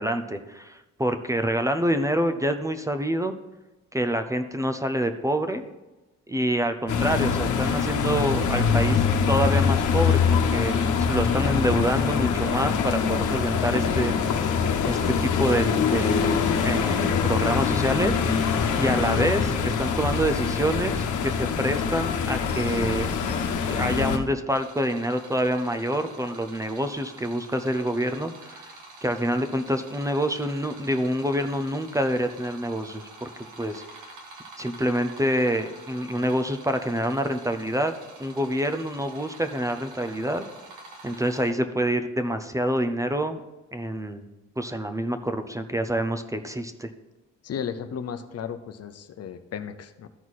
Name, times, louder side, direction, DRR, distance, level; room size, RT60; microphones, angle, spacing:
voice 1, 0.0-3.4 3.9-5.6 6.3-14.5 14.8-16.4 16.6-18.5 18.8-23.1 23.6-28.7 29.0-33.3 33.6-33.8 34.6-37.9 38.2-40.5 41.0-43.4 43.7-44.3 44.6-46.9, right 1 dB, 10° right, 8 dB, 0.7 m, -27 dB
sound 1, 6.9-24.2, left 6 dB, 80° left, 1.1 m, -24 dB
sound 2, 24.5-41.5, right 2 dB, 85° right, 2.0 m, -47 dB
voice 2, 47.4-50.1, left 7 dB, 55° left, 9 dB, 0.8 m, -34 dB
13.5 x 4.6 x 4.2 m, 1.1 s
cardioid pair, 90°, 30 cm